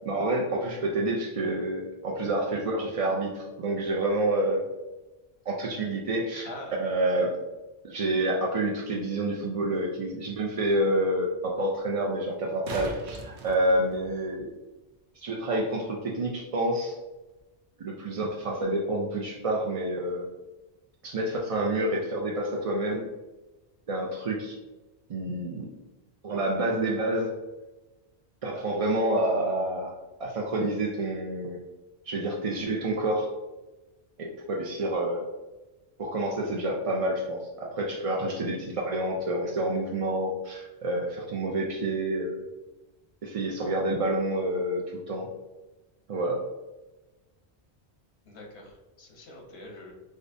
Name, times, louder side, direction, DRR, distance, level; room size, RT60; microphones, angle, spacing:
voice 1, 0.1-4.7 5.5-6.5 6.8-7.3 7.8-14.5 15.2-17.0 17.8-20.3 21.0-23.1 23.9-24.6 25.1-25.7 26.2-27.4 28.4-29.9 30.2-31.6 32.1-33.3 34.2-35.2 36.0-42.4 43.2-45.3 46.1-46.4, right 1 dB, 60° right, -2 dB, 0.3 m, -28 dB
sound 1, 12.3-14.4 17.3-17.4, right 3 dB, 75° right, 0.9 m, -40 dB
voice 2, 48.3-49.9, left 2 dB, 80° left, 0 dB, 1.1 m, -44 dB
5.0 x 2.1 x 2.5 m, 1.1 s
omnidirectional pair, 1.1 m